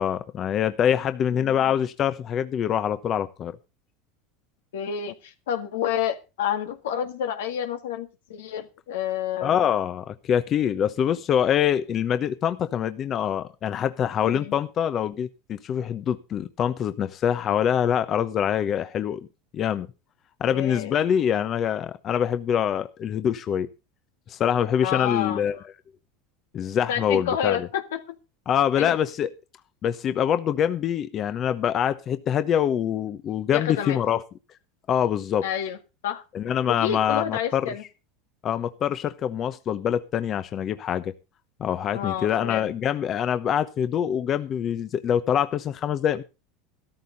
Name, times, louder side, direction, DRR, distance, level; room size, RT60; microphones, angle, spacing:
voice 1, 0.0-3.6 9.4-19.2 19.5-19.9 20.4-23.7 24.3-25.6 26.5-27.7 28.5-29.3 29.8-34.2 34.9-35.5 36.3-37.7 38.4-41.1 41.6-46.2, left 9 dB, 40° left, 11 dB, 0.9 m, -25 dB
voice 2, 4.7-9.7 14.2-14.5 20.5-20.9 24.8-25.4 26.9-28.1 28.8-28.9 33.5-34.0 35.4-36.2 36.7-37.8 41.9-42.7, left 9 dB, 85° left, 7 dB, 1.8 m, -29 dB
13.5 x 13.0 x 4.0 m, 0.30 s
supercardioid pair, 105°, 0 cm